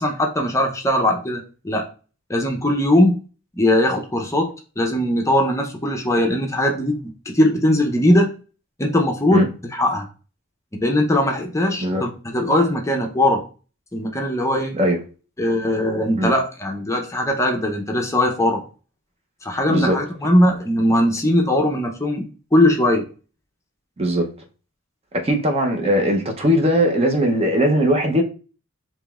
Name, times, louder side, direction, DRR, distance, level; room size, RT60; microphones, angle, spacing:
voice 1, 0.0-1.9 2.3-3.2 3.6-4.5 4.8-8.3 8.8-10.1 10.7-13.4 13.9-14.8 15.4-18.6 19.4-22.2 22.5-23.1, left 1 dB, 15° left, 0.6 m, -20 dB
voice 2, 25.1-28.2, equal, 30° right, 0.7 m, -19 dB
5.0 x 3.0 x 2.4 m
head